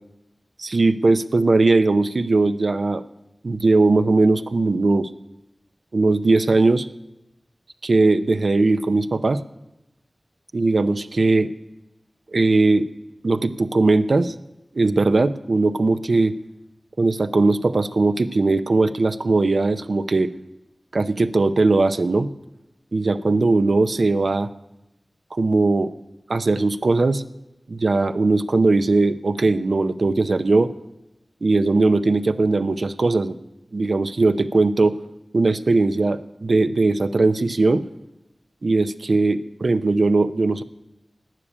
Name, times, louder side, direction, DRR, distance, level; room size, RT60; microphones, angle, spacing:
voice 1, 0.6-3.0 3.4-5.1 5.9-6.9 7.8-9.4 10.5-11.5 12.3-12.9 13.2-14.3 14.7-16.3 17.0-20.3 20.9-22.3 22.9-24.5 25.3-25.9 26.3-27.2 27.7-30.7 31.4-33.4 33.7-35.0 35.3-37.8 38.6-40.6, right 3 dB, 80° right, 11 dB, 0.6 m, -19 dB
12.5 x 8.6 x 9.7 m, 0.91 s
wide cardioid pair, 60°, 0 cm